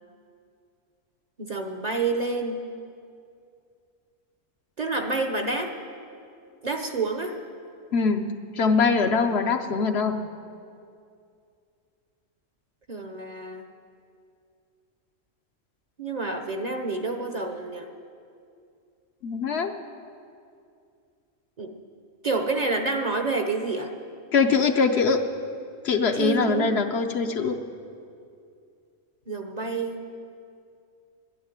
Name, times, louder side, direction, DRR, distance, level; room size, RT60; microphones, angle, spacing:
voice 1, 1.4-2.6 4.8-5.7 6.6-7.3 12.9-13.6 16.0-17.9 21.6-21.7 22.2-23.9 26.1-26.7 29.3-30.0, right 3 dB, 40° right, 5 dB, 0.8 m, -28 dB
voice 2, 7.9-10.3 19.2-19.7 24.3-25.2 25.8-27.6, left 4 dB, 60° left, 6 dB, 0.9 m, -23 dB
11.5 x 9.6 x 9.5 m, 2.4 s
omnidirectional pair, 1.3 m